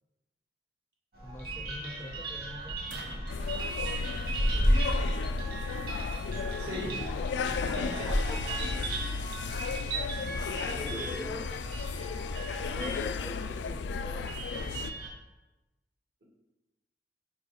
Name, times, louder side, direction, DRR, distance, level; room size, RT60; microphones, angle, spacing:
sound 1, 1.1-15.1, right 1 dB, 55° right, 2.2 m, -34 dB
voice 1, 1.2-2.9 6.7-7.1 7.5-7.6 8.0-8.4 10.5-11.5 12.7-14.9, left 1 dB, 15° left, 5 dB, 0.5 m, -43 dB
sound 2, 1.9-2.3 2.9-6.1 7.1-7.2, right 2 dB, 90° right, 1.0 m, -53 dB
sound 3, 3.3-14.9, left 5 dB, 80° left, 0.3 m, -35 dB
voice 2, 6.6-6.9 7.6-9.2 10.7-11.4, equal, 75° right, -3 dB, 2.2 m, -40 dB
6.2 x 4.6 x 5.4 m, 1.1 s
head